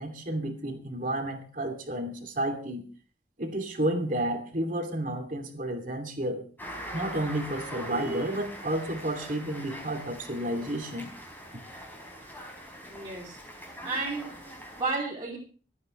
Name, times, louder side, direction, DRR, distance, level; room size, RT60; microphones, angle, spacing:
voice 1, 0.0-2.8 3.4-6.4 6.9-11.1, right 1 dB, 50° right, 4 dB, 2.8 m, -31 dB
sound 1, 6.6-14.8, equal, 10° left, 4.5 m, -42 dB
voice 2, 12.9-13.4 13.8-15.4, right 3 dB, 25° right, -6 dB, 3.1 m, -33 dB
26.5 x 9.4 x 3.3 m, 0.40 s
head